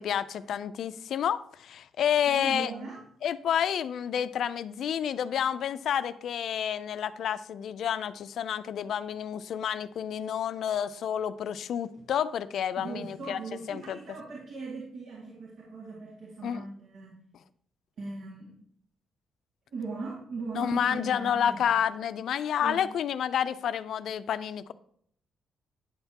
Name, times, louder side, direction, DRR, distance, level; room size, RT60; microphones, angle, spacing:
voice 1, 0.0-2.7 3.2-13.4 13.7-14.0 16.4-16.6 20.5-24.7, left 9 dB, 70° left, 14 dB, 0.4 m, -29 dB
voice 2, 2.3-3.0 12.8-17.1 18.0-18.5 19.7-21.6 22.6-22.8, right 3 dB, 70° right, -5 dB, 2.2 m, -39 dB
9.8 x 5.7 x 2.8 m, 0.65 s
cardioid pair, 90°, 0 cm